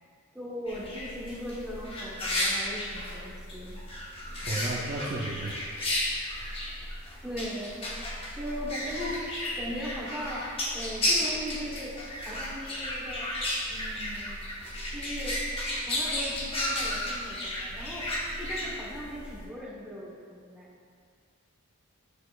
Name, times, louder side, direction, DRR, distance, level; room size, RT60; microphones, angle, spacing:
voice 1, 0.3-3.8 7.2-7.9 8.3-10.5 10.7-11.9 12.2-13.3 13.7-14.4 14.9-15.4 15.8-20.7, equal, 5° right, -6 dB, 1.0 m, -38 dB
sound 1, 0.7-19.4, left 1 dB, 25° left, 0.9 m, -33 dB
voice 2, 4.4-5.8 6.3-6.5, right 2 dB, 40° right, -3 dB, 0.5 m, -34 dB
6.6 x 6.5 x 2.4 m, 2.1 s
head